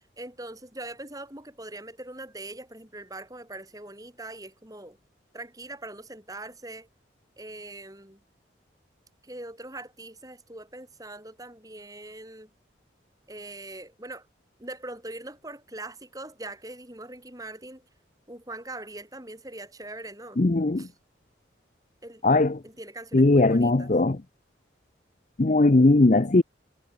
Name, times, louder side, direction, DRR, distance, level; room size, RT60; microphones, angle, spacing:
voice 1, 0.0-5.0 5.3-6.9 7.4-8.2 9.2-12.5 13.3-14.3 14.6-17.8 18.3-20.4 20.8-20.9 22.0-22.2 22.6-23.9, right 2 dB, 20° right, 7.3 m, -42 dB
voice 2, 20.4-20.8 22.2-22.5 23.1-24.2 25.4-26.4, left 2 dB, 40° left, 0.6 m, -19 dB
head